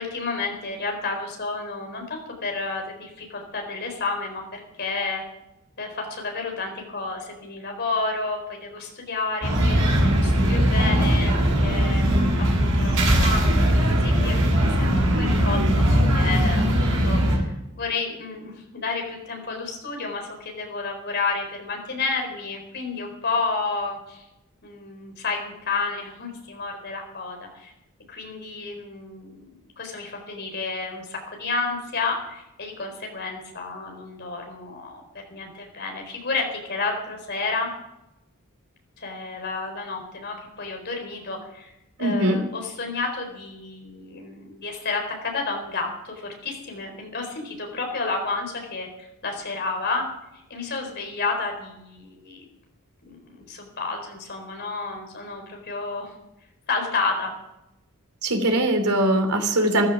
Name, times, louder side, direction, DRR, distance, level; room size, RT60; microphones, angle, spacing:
voice 1, 0.0-5.2 5.8-15.6 15.9-24.2 24.6-27.7 28.1-29.5 29.8-35.0 35.3-37.7 39.0-41.7 42.0-50.0 50.3-52.4 53.0-56.1 56.7-57.3, left 3 dB, 50° left, 3 dB, 4.2 m, -31 dB
sound 1, 9.4-17.4, equal, 55° right, 6.8 m, -20 dB
voice 2, 42.0-42.4 58.2-59.9, right 1 dB, 80° right, 5 dB, 3.1 m, -21 dB
14.0 x 13.0 x 6.1 m, 0.89 s
head